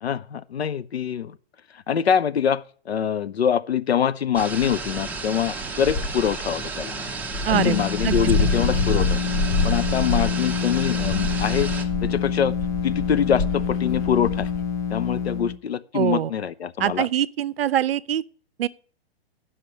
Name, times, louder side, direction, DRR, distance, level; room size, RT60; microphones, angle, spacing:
voice 1, 0.0-1.3 1.9-6.9 7.5-9.2 9.6-11.7 12.0-12.5 12.8-14.5 14.9-17.1, left 8 dB, 85° left, 0.6 m, -24 dB
sound 1, 4.3-11.8, right 3 dB, 5° right, 0.8 m, -33 dB
Dog, 5.8-6.4 7.0-7.1 7.3-14.6, left 3 dB, 25° left, 0.7 m, -27 dB
sound 2, 7.5-15.6, left 7 dB, 50° left, 1.0 m, -27 dB
voice 2, 7.5-8.5 15.9-16.3 16.8-18.2 18.6-18.7, right 11 dB, 70° right, 0.6 m, -24 dB
8.4 x 5.7 x 7.8 m
hypercardioid pair, 115°, 31 cm